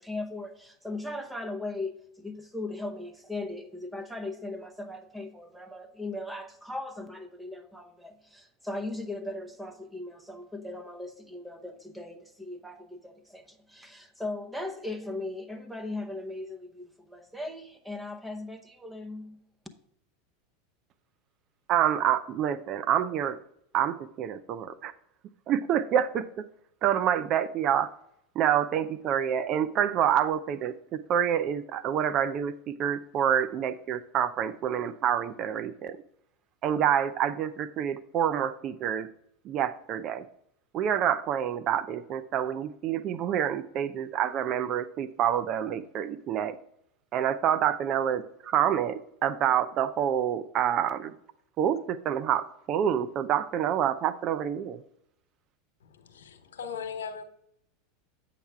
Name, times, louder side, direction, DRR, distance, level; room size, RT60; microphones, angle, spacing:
voice 1, 0.0-19.5, left 2 dB, 5° right, 0.8 m, -38 dB
voice 2, 21.7-23.4 23.7-24.9 25.5-26.4 26.8-27.9 28.3-36.0 36.6-39.1 39.4-40.2 40.7-46.6 47.1-51.1 51.6-54.8, right 9 dB, 45° right, 0.5 m, -27 dB
voice 3, 55.8-57.2, left 6 dB, 85° left, 1.1 m, -38 dB
8.3 x 5.8 x 3.5 m
hypercardioid pair, 100°, 0 cm